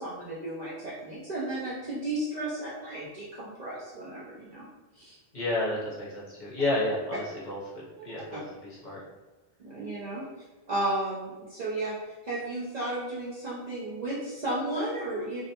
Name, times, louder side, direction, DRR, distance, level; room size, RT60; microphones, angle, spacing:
voice 1, 0.0-4.6 4.9-5.2 8.0-8.1 9.6-10.2 10.7-15.4, right 1 dB, 55° right, -7 dB, 0.4 m, -33 dB
voice 2, 5.3-7.6 8.0-8.4 8.8-9.0, left 2 dB, 45° left, -7 dB, 0.7 m, -30 dB
2.6 x 2.0 x 2.8 m, 1.2 s
omnidirectional pair, 1.2 m